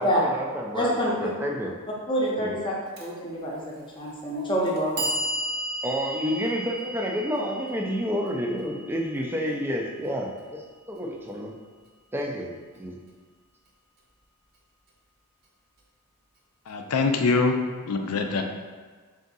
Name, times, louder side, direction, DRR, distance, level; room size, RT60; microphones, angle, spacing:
voice 1, 0.0-1.7 2.4-2.6 5.8-10.6 10.9-11.5 12.1-12.5 12.8-13.0, equal, 10° right, 0 dB, 0.4 m, -29 dB
voice 2, 0.7-1.3 2.1-3.6 4.0-5.0, equal, 20° left, -4 dB, 0.7 m, -26 dB
Clock, 3.0-3.1 4.0-4.1 4.7-10.7, right 1 dB, 45° right, 0.6 m, -35 dB
voice 3, 16.7-17.5 17.9-18.4, left 4 dB, 75° left, 4 dB, 0.4 m, -23 dB
3.5 x 2.6 x 3.9 m, 1.5 s
head